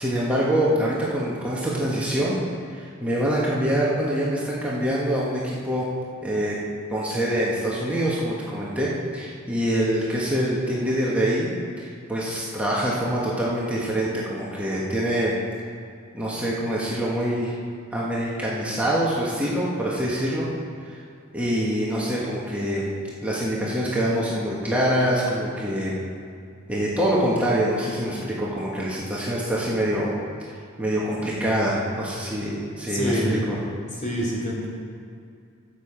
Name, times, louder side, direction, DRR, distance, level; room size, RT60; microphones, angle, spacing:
voice 1, 0.0-2.4 2.7-5.9 6.2-6.6 6.9-15.4 16.1-17.5 17.9-20.5 20.9-21.0 21.3-22.9 23.2-26.0 26.7-30.1 30.8-33.6, equal, 5° right, -6 dB, 1.4 m, -25 dB
voice 2, 32.9-33.4 33.9-34.7, equal, 35° left, -5 dB, 2.8 m, -26 dB
12.5 x 7.5 x 5.1 m, 2.4 s
head